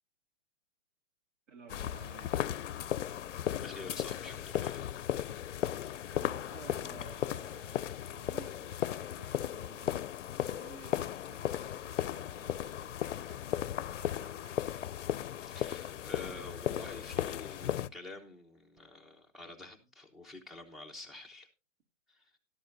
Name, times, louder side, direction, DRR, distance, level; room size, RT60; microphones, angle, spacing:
voice 1, 1.5-2.4 6.1-9.9 10.3-14.6, right 5 dB, 70° right, 2.6 m, -55 dB
sound 1, 1.7-17.9, left 11 dB, 70° left, 0.6 m, -36 dB
voice 2, 3.6-4.9 15.4-21.5 22.1-22.4, left 2 dB, ahead, 1.0 m, -48 dB
12.5 x 12.0 x 2.6 m
hypercardioid pair, 145°, 38 cm